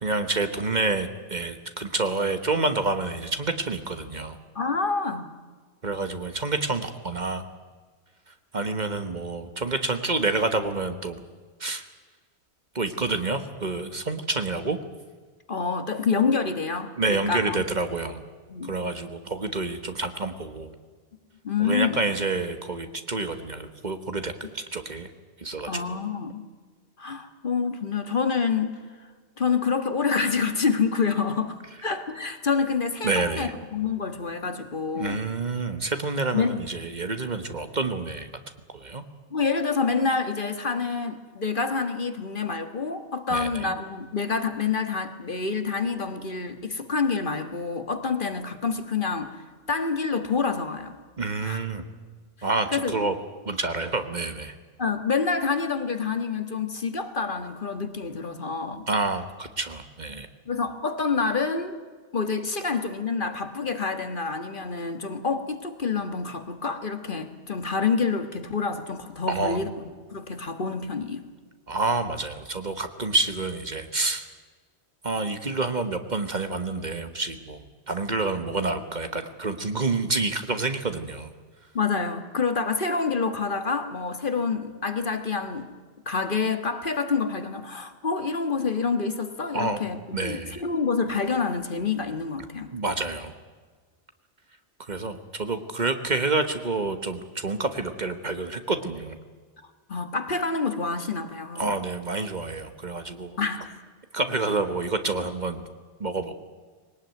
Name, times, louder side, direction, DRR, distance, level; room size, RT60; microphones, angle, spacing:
voice 1, 0.0-4.4 5.8-7.4 8.5-11.2 11.6-11.8 12.7-14.8 17.0-18.2 18.6-20.7 21.6-25.1 25.4-26.0 33.0-33.5 34.9-38.3 38.7-39.0 43.3-43.7 51.2-51.8 52.4-53.1 53.4-54.5 58.9-60.3 69.3-69.6 71.7-74.3 75.0-81.3 89.5-89.8 90.1-90.6 92.7-93.3 94.8-99.2 101.6-103.4 104.1-105.6 106.0-106.3, right 3 dB, 40° right, 8 dB, 1.5 m, -28 dB
voice 2, 4.5-5.3 15.5-17.7 18.5-18.7 21.4-22.1 25.6-26.5 27.0-28.8 29.4-35.2 36.3-36.6 39.3-50.9 51.4-51.6 52.4-52.9 54.8-58.9 60.5-61.8 62.1-71.2 81.7-85.7 86.0-92.7 99.9-101.7 103.4-103.8, left 5 dB, 50° left, 8 dB, 1.7 m, -27 dB
21.0 x 18.5 x 9.4 m, 1.5 s
omnidirectional pair, 1.1 m